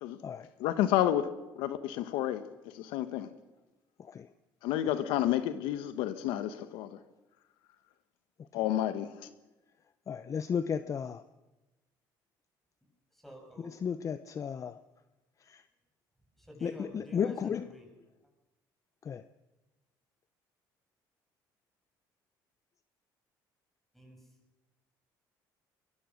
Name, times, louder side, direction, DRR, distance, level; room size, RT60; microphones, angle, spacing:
voice 1, 0.6-1.3 1.6-2.4 2.7-3.3 4.6-7.0 8.5-9.1, left 12 dB, 85° left, 11 dB, 1.2 m, -30 dB
voice 2, 10.1-11.2 13.8-14.7 16.6-17.6 19.1-19.2, left 7 dB, 40° left, 12 dB, 0.8 m, -33 dB
voice 3, 13.1-13.8 16.4-17.9 23.9-24.3, left 1 dB, 5° left, 2 dB, 7.8 m, -50 dB
22.5 x 21.0 x 6.5 m, 1.0 s
cardioid pair, 100°, 8 cm